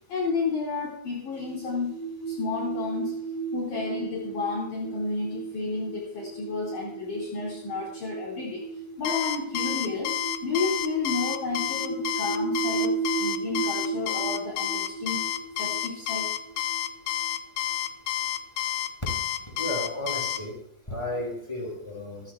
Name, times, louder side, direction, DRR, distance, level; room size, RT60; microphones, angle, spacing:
voice 1, 0.1-2.0 2.3-3.2 3.5-15.2 15.6-16.3, left 4 dB, 55° left, -4 dB, 3.5 m, -31 dB
sound 1, 1.3-17.6, right 5 dB, 25° left, 3.6 m, -34 dB
Alarm, 9.0-20.4, left 13 dB, 80° left, 3.0 m, -30 dB
voice 2, 19.5-20.6 20.9-22.3, left 1 dB, 5° left, -1 dB, 6.8 m, -33 dB
28.0 x 12.5 x 2.4 m, 0.72 s
omnidirectional pair, 4.7 m